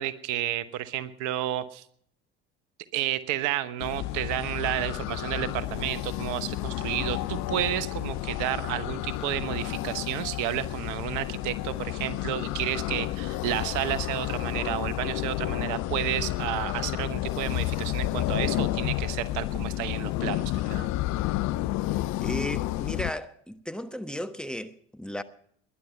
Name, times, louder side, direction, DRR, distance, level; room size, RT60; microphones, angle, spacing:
voice 1, 0.0-1.8 2.9-20.9, right 13 dB, 65° right, 1.1 m, -31 dB
sound 1, 3.8-23.1, left 16 dB, 60° left, 0.6 m, -31 dB
voice 2, 22.2-25.2, equal, 5° left, 1.2 m, -35 dB
20.0 x 11.0 x 5.7 m
hypercardioid pair, 60°, 32 cm